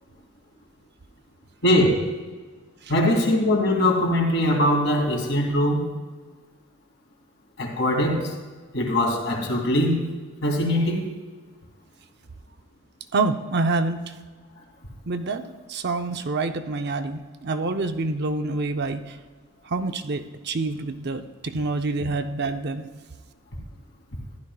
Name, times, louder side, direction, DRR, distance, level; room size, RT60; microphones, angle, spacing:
voice 1, 1.6-2.0 2.9-5.8 7.6-8.3 8.7-10.0 10.4-11.1, left 1 dB, 65° left, 0 dB, 2.6 m, -21 dB
voice 2, 13.1-14.0 15.1-15.4 15.7-19.0 19.7-22.9, right 3 dB, 55° right, 7 dB, 0.6 m, -27 dB
14.5 x 11.0 x 2.3 m, 1.4 s
head